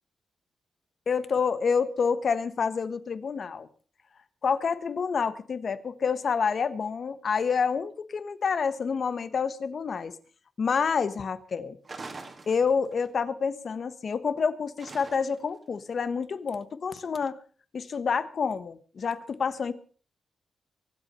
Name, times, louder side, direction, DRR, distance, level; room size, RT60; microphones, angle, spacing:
voice 1, 1.1-3.7 4.4-10.1 10.6-11.8 12.5-17.4 17.7-19.7, left 5 dB, 50° left, 13 dB, 1.2 m, -28 dB
sound 1, 11.8-13.1 14.8-15.5, right 3 dB, 35° right, 2.2 m, -43 dB
24.5 x 8.4 x 5.5 m, 0.42 s
wide cardioid pair, 135°, 0 cm